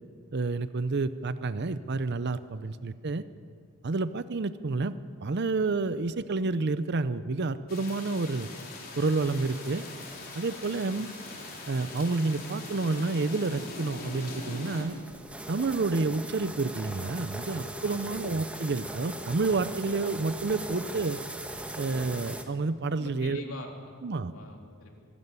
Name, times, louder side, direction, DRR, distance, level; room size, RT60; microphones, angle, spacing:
voice 1, 0.3-3.2 3.8-5.0 5.2-8.5 9.0-9.8 10.3-11.1 11.7-15.0 15.5-21.2 21.8-23.4 24.0-24.3, right 3 dB, 50° right, 13 dB, 0.6 m, -29 dB
sound 1, 7.7-14.8, left 3 dB, 45° left, 4.1 m, -42 dB
sound 2, 9.2-22.4, right 1 dB, 5° right, 1.3 m, -41 dB
voice 2, 17.8-18.2 23.0-24.0 24.3-24.9, left 2 dB, 80° left, 2 dB, 3.5 m, -44 dB
25.0 x 12.5 x 9.6 m, 2.1 s
head